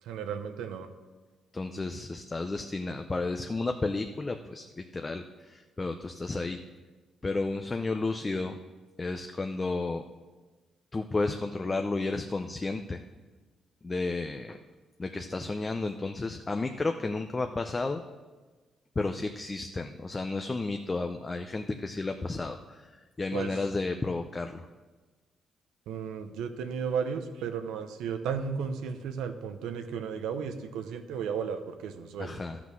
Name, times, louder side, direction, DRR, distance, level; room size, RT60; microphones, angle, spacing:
voice 1, 0.0-0.9 23.3-23.5 25.9-32.4, right 6 dB, 90° right, 7 dB, 0.8 m, -34 dB
voice 2, 1.5-6.6 7.2-8.6 9.0-10.0 10.9-13.0 13.8-14.6 15.0-18.0 19.0-24.7 32.2-32.6, left 3 dB, 25° left, 6 dB, 0.5 m, -32 dB
12.5 x 5.9 x 6.1 m, 1.3 s
cardioid pair, 90°, 0 cm